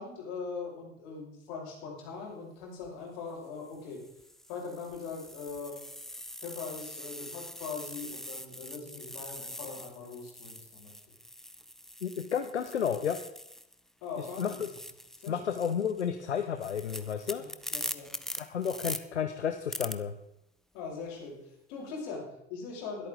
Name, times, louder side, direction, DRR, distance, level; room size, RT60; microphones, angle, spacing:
voice 1, 0.0-4.0 4.5-5.8 6.4-11.0 14.0-14.6 15.2-15.5 17.4-18.1 20.7-23.1, left 5 dB, 60° left, -2 dB, 5.5 m, -41 dB
sound 1, 2.6-2.9 3.6-13.8 14.1-19.0 19.7-19.9, left 1 dB, ahead, 0.7 m, -43 dB
voice 2, 12.0-13.2 14.4-14.5 15.3-17.4 18.4-20.1, left 8 dB, 85° left, 8 dB, 0.8 m, -32 dB
21.5 x 8.7 x 3.8 m, 0.84 s
figure-of-eight pair, 70°, 33 cm